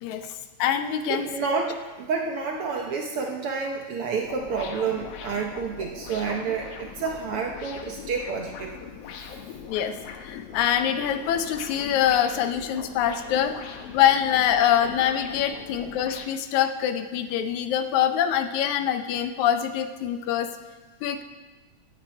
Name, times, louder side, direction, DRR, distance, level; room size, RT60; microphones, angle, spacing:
voice 1, 0.0-1.5 9.7-10.0 10.2-13.6 13.9-20.5 21.0-21.2, left 10 dB, 80° left, 9 dB, 2.1 m, -24 dB
voice 2, 1.0-8.7 15.7-15.8, right 5 dB, 65° right, 1 dB, 1.5 m, -29 dB
sound 1, 4.2-16.3, left 7 dB, 65° left, 1.8 m, -40 dB
15.0 x 9.1 x 4.6 m, 1.2 s
omnidirectional pair, 3.4 m